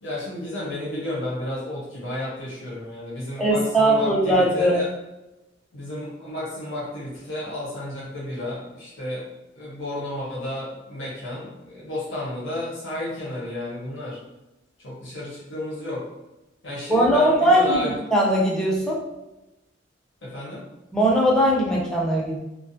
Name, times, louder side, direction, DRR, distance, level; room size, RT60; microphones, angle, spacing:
voice 1, 0.0-4.9 5.7-9.2 9.6-14.2 14.8-16.0 16.6-17.9 20.2-20.6, left 1 dB, 80° left, -7 dB, 1.0 m, -32 dB
voice 2, 3.4-4.9 16.9-19.0 20.9-22.4, right 1 dB, 5° left, -5 dB, 0.5 m, -20 dB
2.5 x 2.3 x 2.6 m, 0.99 s
head